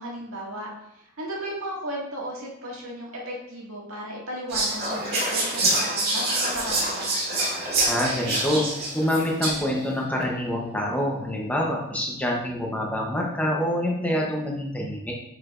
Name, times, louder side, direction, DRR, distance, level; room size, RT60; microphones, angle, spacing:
voice 1, 0.0-7.1, right 1 dB, 85° right, -4 dB, 1.9 m, -35 dB
Whispering, 4.5-9.8, right 2 dB, 45° right, 2.1 m, -26 dB
voice 2, 7.9-8.7 8.9-15.1, left 1 dB, 5° left, -1 dB, 0.8 m, -26 dB
9.0 x 4.9 x 2.5 m, 0.80 s
head